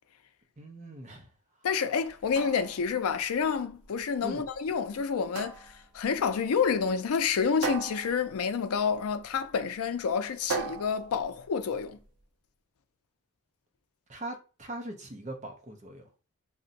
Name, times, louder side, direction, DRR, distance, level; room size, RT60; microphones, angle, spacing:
voice 1, 0.6-1.3 4.2-4.5 14.1-16.1, right 1 dB, 30° right, 0.6 m, -41 dB
voice 2, 1.6-12.0, left 6 dB, 80° left, 0.4 m, -29 dB
sound 1, 2.1-12.1, right 5 dB, 75° right, 0.6 m, -40 dB
2.5 x 2.1 x 3.9 m
head